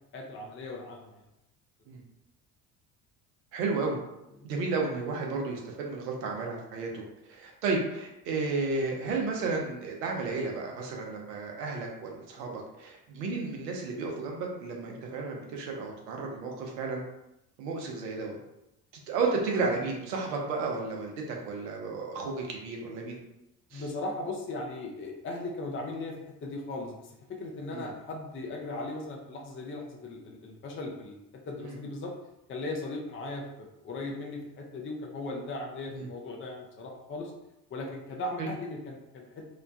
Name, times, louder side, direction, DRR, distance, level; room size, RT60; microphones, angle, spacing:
voice 1, 0.1-1.2 4.4-4.5 23.7-31.2 31.5-32.1 32.5-37.3 37.7-39.5, left 2 dB, 25° left, 0 dB, 0.6 m, -38 dB
voice 2, 3.5-4.0 4.4-7.0 7.3-17.0 17.6-18.4 19.1-23.2 23.7-23.8 27.7-27.9 31.6-31.7 35.9-36.1 38.4-38.5, right 3 dB, 85° right, 0 dB, 0.7 m, -32 dB
2.9 x 2.1 x 2.6 m, 0.87 s
hypercardioid pair, 65°, 47 cm